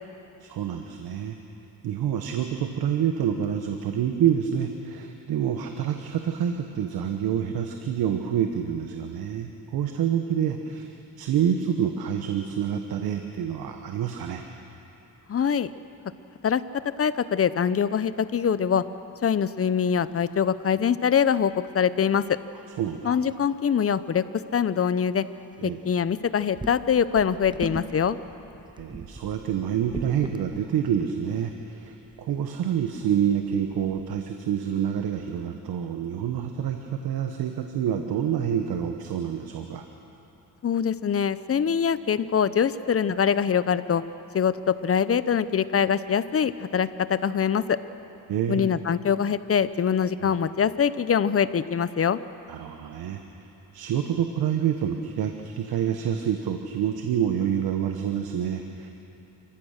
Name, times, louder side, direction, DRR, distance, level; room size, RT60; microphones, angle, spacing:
voice 1, 0.4-1.4 1.8-10.9 11.2-14.4 22.8-23.2 25.6-25.8 28.8-39.8 48.3-48.7 50.2-50.4 52.5-53.2 53.7-58.9, right 9 dB, 90° right, 5 dB, 1.2 m, -27 dB
voice 2, 15.3-15.7 16.4-16.6 17.0-18.8 19.2-22.4 23.0-24.2 24.5-25.2 25.6-28.2 40.6-44.0 44.3-47.8 48.5-52.2, left 7 dB, 40° left, 15 dB, 0.8 m, -23 dB
sound 1, 19.7-20.1 20.3-20.4 20.6-21.0 21.6-21.7 22.4-22.5 23.0-23.1 23.3-23.7 24.1-24.3 24.6-24.7 25.0-25.2 25.9-34.2, right 2 dB, 15° right, 0.9 m, -43 dB
28.5 x 14.5 x 6.6 m, 3.0 s
cardioid pair, 80°, 36 cm